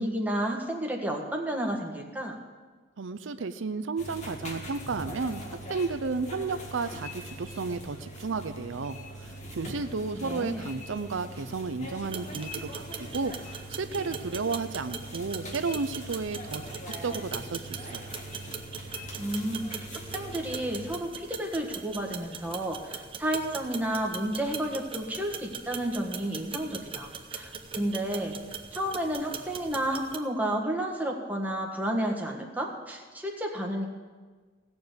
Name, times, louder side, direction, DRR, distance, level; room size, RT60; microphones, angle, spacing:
voice 1, 0.0-2.3 10.2-10.6 19.2-19.9 20.1-28.4 28.7-33.9, right 1 dB, 10° right, 0 dB, 1.6 m, -31 dB
voice 2, 3.0-5.4 5.7-18.1, right 4 dB, 90° right, 10 dB, 0.6 m, -33 dB
sound 1, 4.0-21.0, equal, 40° left, 1.9 m, -42 dB
sound 2, 12.0-30.2, right 6 dB, 30° right, 0.9 m, -41 dB
16.5 x 7.0 x 7.9 m, 1.4 s
head